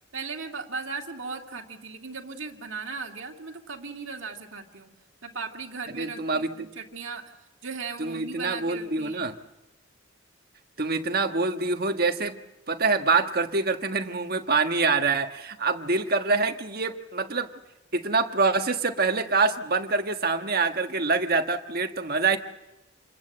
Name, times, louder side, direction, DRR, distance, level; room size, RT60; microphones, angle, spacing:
voice 1, 0.1-4.9 5.2-7.2 7.6-9.3, right 4 dB, 70° right, 1 dB, 2.3 m, -37 dB
voice 2, 5.9-6.7 8.0-9.3 10.8-12.4 12.7-17.5 17.9-22.4, right 4 dB, 50° right, 6 dB, 1.4 m, -25 dB
27.5 x 21.0 x 7.8 m, 0.96 s
head